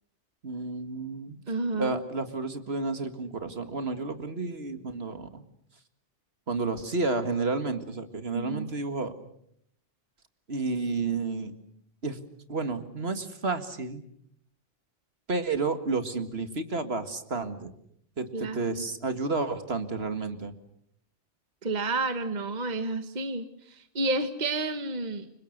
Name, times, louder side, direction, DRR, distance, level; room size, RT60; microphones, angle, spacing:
voice 1, 0.4-1.4 1.8-5.4 6.5-9.1 10.5-11.5 12.0-12.2 12.5-14.0 15.3-17.7 18.2-20.5, right 3 dB, 55° right, 9 dB, 2.2 m, -31 dB
voice 2, 1.5-2.0 8.3-8.7 18.3-18.8 21.6-23.4 23.9-25.3, right 2 dB, 40° right, 9 dB, 1.4 m, -30 dB
29.5 x 25.0 x 6.7 m, 0.70 s
omnidirectional pair, 1.2 m